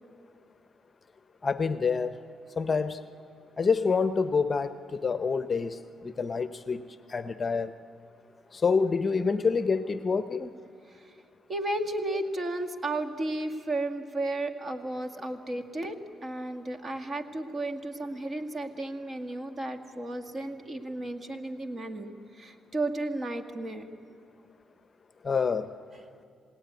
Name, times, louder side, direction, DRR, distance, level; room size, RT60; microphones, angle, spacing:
voice 1, 1.4-2.1 2.6-3.0 3.6-6.8 7.1-7.7 8.5-10.5 25.2-25.7, left 5 dB, 35° left, 10 dB, 0.9 m, -27 dB
voice 2, 11.5-23.8, right 2 dB, 35° right, 6 dB, 2.0 m, -33 dB
28.0 x 19.0 x 9.6 m, 2.3 s
cardioid pair, 90°, 0 cm